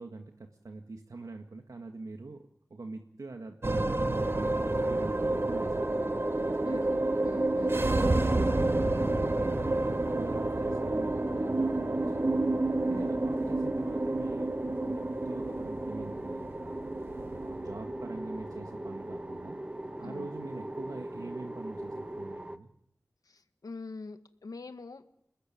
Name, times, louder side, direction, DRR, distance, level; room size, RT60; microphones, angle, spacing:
voice 1, 0.0-6.0 6.3-6.8 7.7-9.2 10.1-12.4 12.9-19.6 20.0-22.7, right 3 dB, 70° right, 4 dB, 1.9 m, -44 dB
sound 1, 3.6-22.1, right 2 dB, 40° right, 1.7 m, -30 dB
sound 2, 4.1-22.6, right 1 dB, 20° right, 1.4 m, -40 dB
voice 2, 6.6-7.9 12.8-13.1 20.0-20.3 23.3-25.2, left 3 dB, 80° left, 9 dB, 1.8 m, -44 dB
28.5 x 19.5 x 8.9 m, 0.74 s
wide cardioid pair, 75°, 6 cm